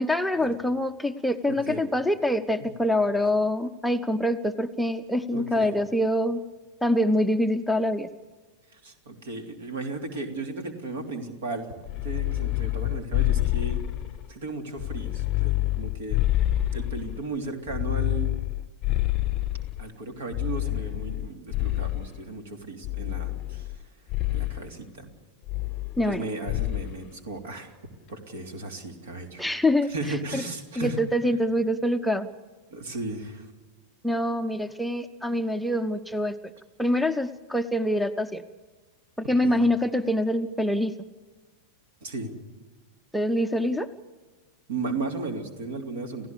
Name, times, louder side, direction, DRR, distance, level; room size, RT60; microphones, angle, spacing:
voice 1, 0.0-6.4 6.8-8.1 26.0-26.3 29.4-30.4 30.8-32.3 34.0-36.4 36.8-38.4 39.2-40.9 43.1-43.9, left 1 dB, ahead, 6 dB, 0.7 m, -25 dB
voice 2, 1.5-1.8 2.6-2.7 5.3-5.7 8.7-11.7 12.0-13.8 14.3-16.2 16.7-18.3 19.8-23.8 24.3-25.1 26.0-27.7 28.1-29.5 29.9-31.0 32.7-33.5 39.4-39.6 42.0-42.4 44.7-46.3, right 3 dB, 60° right, 5 dB, 3.1 m, -35 dB
sound 1, 11.9-14.3 14.8-17.2 17.7-19.9 20.3-22.2 22.8-23.8 24.1-24.6 25.5-26.2 26.5-26.9, left 16 dB, 35° left, 0.8 m, -27 dB
30.0 x 16.0 x 6.9 m, 1.4 s
figure-of-eight pair, 90°, 0 cm